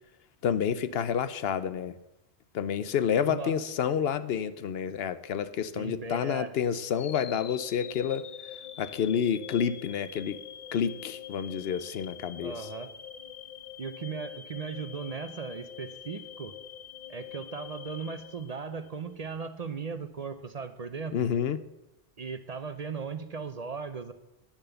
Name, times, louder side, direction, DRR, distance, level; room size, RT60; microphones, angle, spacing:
voice 1, 0.4-2.0 2.5-8.3 8.8-10.4 10.7-12.5 21.1-21.6, left 8 dB, 75° left, 13 dB, 0.9 m, -29 dB
voice 2, 3.2-3.6 5.8-6.5 12.4-12.9 13.8-16.6 17.1-21.3 22.2-24.1, right 5 dB, 45° right, 10 dB, 0.7 m, -37 dB
sound 1, 6.9-19.1, left 9 dB, 55° left, 0.4 m, -44 dB
10.0 x 7.2 x 6.9 m, 0.91 s
omnidirectional pair, 1.0 m